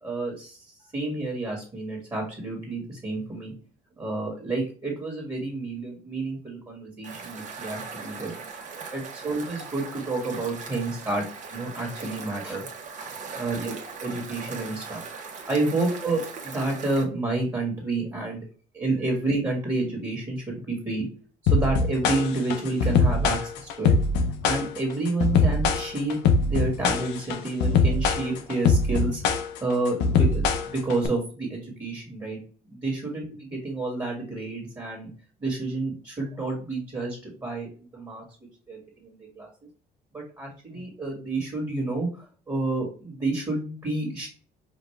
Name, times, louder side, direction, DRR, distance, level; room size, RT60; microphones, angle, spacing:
voice 1, 0.0-3.5 4.0-8.3 8.9-12.7 13.0-13.7 14.0-15.0 15.4-18.4 18.7-21.1 21.4-24.0 24.4-32.4 32.7-35.1 35.4-38.2 38.7-39.5 40.1-44.3, right 2 dB, 20° right, -1 dB, 1.6 m, -30 dB
sound 1, 7.0-17.0, right 5 dB, 45° right, 1.0 m, -39 dB
sound 2, 21.5-31.1, left 4 dB, 90° left, 0.6 m, -22 dB
5.1 x 2.4 x 3.2 m, 0.40 s
cardioid pair, 110°, 17 cm